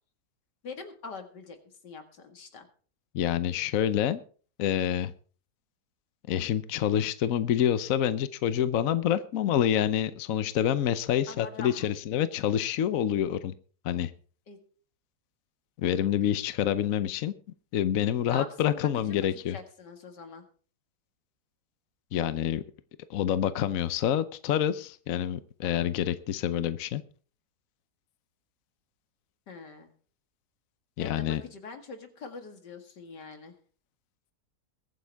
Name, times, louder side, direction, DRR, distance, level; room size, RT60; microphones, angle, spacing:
voice 1, 0.6-1.6 1.8-2.7 11.3-11.9 14.5-14.6 18.3-20.4 29.5-29.9 31.0-33.6, left 4 dB, 80° left, 5 dB, 2.6 m, -43 dB
voice 2, 3.1-4.2 4.6-5.1 6.3-13.5 13.8-14.1 15.8-17.3 17.7-19.6 22.1-22.6 23.1-27.0 31.0-31.4, left 10 dB, 60° left, 13 dB, 1.0 m, -27 dB
22.0 x 9.5 x 3.5 m, 0.42 s
omnidirectional pair, 1.8 m